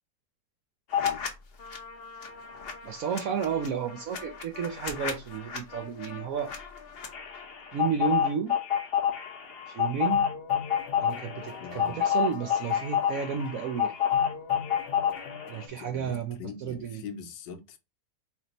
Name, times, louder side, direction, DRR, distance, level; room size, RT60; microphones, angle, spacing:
sound 1, 0.9-1.3 1.6-15.7, left 8 dB, 55° left, 0.7 m, -29 dB
voice 1, 2.8-6.5 7.7-8.5 9.7-10.3 11.0-13.9 15.5-17.0, right 7 dB, 70° right, 0.8 m, -32 dB
voice 2, 11.6-12.0 15.7-17.8, left 5 dB, 85° left, 1.4 m, -42 dB
3.5 x 2.8 x 4.0 m
omnidirectional pair, 1.9 m